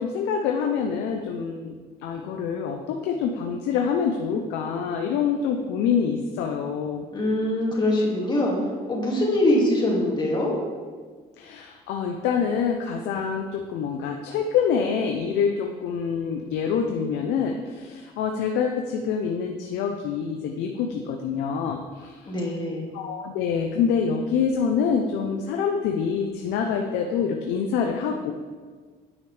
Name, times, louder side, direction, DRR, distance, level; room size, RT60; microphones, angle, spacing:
voice 1, 0.0-1.8 2.0-7.1 11.4-22.2 22.9-28.3, left 6 dB, 90° left, 3 dB, 0.7 m, -26 dB
voice 2, 7.1-8.5 8.9-10.5 22.3-22.9, left 1 dB, 25° left, -3 dB, 2.5 m, -23 dB
9.7 x 8.1 x 3.4 m, 1.5 s
cardioid pair, 110°, 17 cm